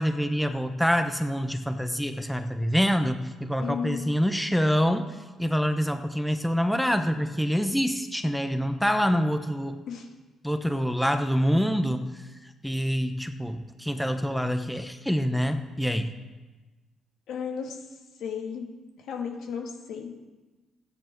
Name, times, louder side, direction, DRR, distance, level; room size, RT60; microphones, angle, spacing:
voice 1, 0.0-5.1 5.4-9.8 10.4-12.1 12.6-16.1, equal, ahead, 7 dB, 0.9 m, -26 dB
voice 2, 3.6-4.1 9.9-10.1 17.3-17.8 18.2-18.7 19.0-20.2, left 7 dB, 80° left, 1 dB, 2.2 m, -34 dB
14.5 x 9.8 x 4.6 m, 1.2 s
cardioid pair, 90°, 0 cm